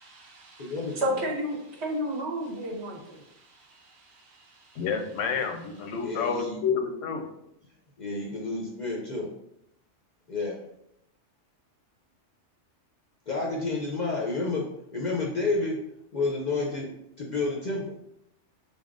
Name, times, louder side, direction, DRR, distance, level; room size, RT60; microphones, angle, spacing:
voice 1, 0.0-4.8 5.2-5.3, equal, 60° right, -2 dB, 1.1 m, -34 dB
voice 2, 0.6-1.0 5.9-6.6 8.0-9.3 10.3-10.6 13.3-15.8 16.1-16.9 17.2-18.0, left 3 dB, 55° left, -2 dB, 0.5 m, -30 dB
voice 3, 4.8-7.2, left 6 dB, 85° left, 5 dB, 0.9 m, -29 dB
4.1 x 3.5 x 2.4 m, 0.79 s
omnidirectional pair, 1.3 m